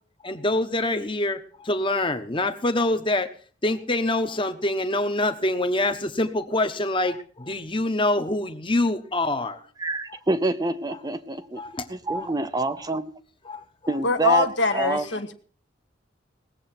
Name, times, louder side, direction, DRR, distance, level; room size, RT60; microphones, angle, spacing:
voice 1, 0.2-3.3 3.6-9.6 11.6-11.8 12.1-12.3 13.4-13.9 14.6-14.8, left 2 dB, 25° left, 8 dB, 1.2 m, -25 dB
voice 2, 9.8-11.6 11.9-13.0 13.9-15.0, right 2 dB, 20° right, 10 dB, 0.6 m, -26 dB
voice 3, 14.0-15.3, left 3 dB, 65° left, 7 dB, 1.4 m, -23 dB
19.0 x 7.8 x 6.0 m, 0.43 s
head